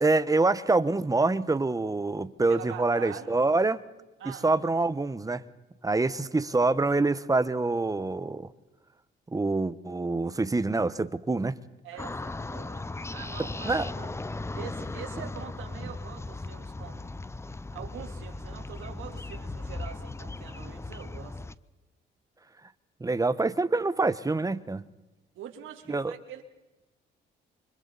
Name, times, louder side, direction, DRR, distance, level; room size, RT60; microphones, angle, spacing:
voice 1, 0.0-3.8 4.4-5.4 5.8-8.5 9.3-11.5 13.6-13.9 23.0-24.9 25.9-26.1, right 3 dB, 15° right, 1.1 m, -26 dB
voice 2, 2.5-3.3 4.2-4.5 11.8-14.2 14.5-17.0 17.7-21.4 25.3-26.4, right 9 dB, 85° right, 3.3 m, -44 dB
sound 1, 12.0-21.6, left 2 dB, 15° left, 0.7 m, -37 dB
29.0 x 25.0 x 4.2 m
cardioid pair, 90°, 20 cm